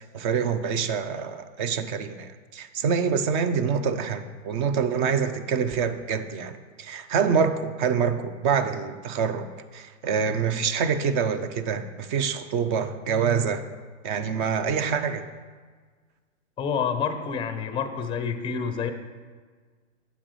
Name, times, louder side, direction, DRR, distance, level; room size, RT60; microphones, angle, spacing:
voice 1, 0.0-9.5 9.7-13.6 14.0-15.2, right 6 dB, 40° right, 10 dB, 0.6 m, -26 dB
voice 2, 16.6-18.9, left 6 dB, 15° left, 8 dB, 0.5 m, -28 dB
9.7 x 7.1 x 3.2 m, 1.5 s
hypercardioid pair, 115°, 39 cm